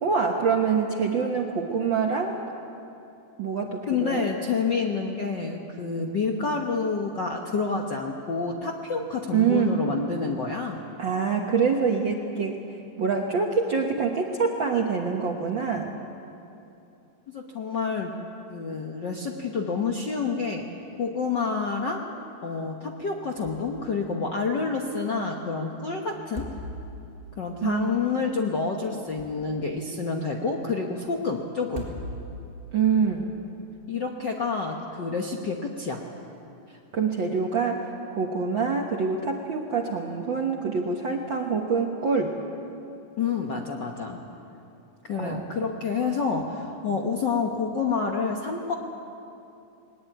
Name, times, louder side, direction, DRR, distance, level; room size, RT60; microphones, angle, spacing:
voice 1, 0.0-2.4 3.4-4.3 9.3-9.7 11.0-12.6 13.0-16.0 27.6-27.9 32.7-33.3 36.9-42.4 45.2-45.4, right 5 dB, 55° right, 1 dB, 1.3 m, -25 dB
voice 2, 3.9-10.8 14.8-14.9 17.3-18.1 18.5-20.7 21.0-22.0 22.4-26.5 27.4-31.9 33.9-36.0 43.2-44.2 45.0-48.7, left 4 dB, 55° left, 1 dB, 1.2 m, -28 dB
sound 1, 23.4-23.9 24.2-24.3 26.1-27.1 28.8-29.7 31.6-32.5, right 1 dB, 25° right, 4.3 m, -39 dB
20.5 x 19.5 x 9.2 m, 2.7 s
omnidirectional pair, 3.6 m